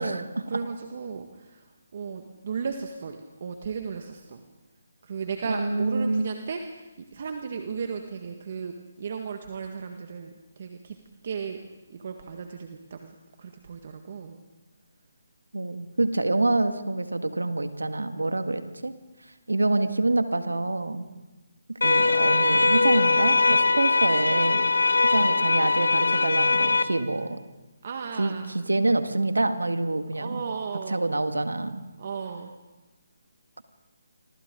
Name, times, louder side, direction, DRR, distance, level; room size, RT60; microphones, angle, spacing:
voice 1, 0.0-1.6 1.9-4.4 5.0-11.0 11.2-11.6 11.9-14.4 25.2-25.3 27.8-28.5 30.2-31.0 32.0-32.5, right 6 dB, 50° right, 5 dB, 1.7 m, -35 dB
voice 2, 5.5-6.3 15.5-18.9 19.5-21.1 21.7-24.7 25.0-27.4 28.2-30.4 30.9-31.8, right 2 dB, 90° right, 8 dB, 1.9 m, -26 dB
sound 1, 21.8-26.8, left 3 dB, 80° left, 1.5 m, -21 dB
29.5 x 25.5 x 3.8 m, 1.1 s
figure-of-eight pair, 150°, 0 cm